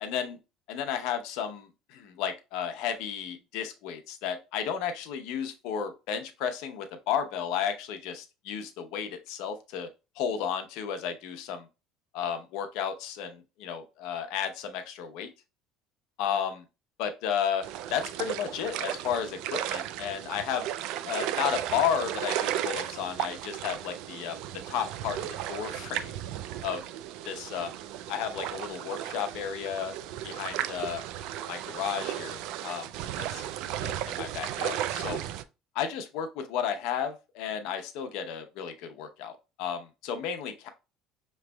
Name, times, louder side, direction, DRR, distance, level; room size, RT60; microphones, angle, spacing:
voice 1, 0.0-0.4 0.7-9.9 10.2-11.7 12.1-15.3 16.2-16.6 17.0-20.7 21.0-24.4 24.7-26.1 26.6-26.8 27.3-27.7 28.1-30.0 30.2-31.0 31.5-32.9 33.2-33.4 33.8-35.2 35.7-40.7, left 8 dB, 70° left, 0.7 m, -33 dB
sound 1, 17.6-35.4, right 12 dB, 65° right, 0.3 m, -35 dB
6.0 x 3.2 x 2.2 m
cardioid pair, 145°, 0 cm